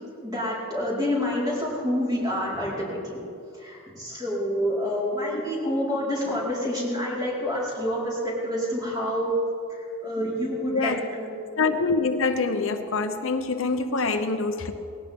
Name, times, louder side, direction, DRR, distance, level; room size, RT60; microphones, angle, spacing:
voice 1, 0.2-3.2 3.6-9.4 9.7-11.4, equal, 20° right, -6 dB, 4.7 m, -28 dB
voice 2, 10.6-11.0 11.6-14.7, left 4 dB, 65° left, 7 dB, 0.9 m, -25 dB
20.0 x 17.5 x 3.7 m, 2.5 s
head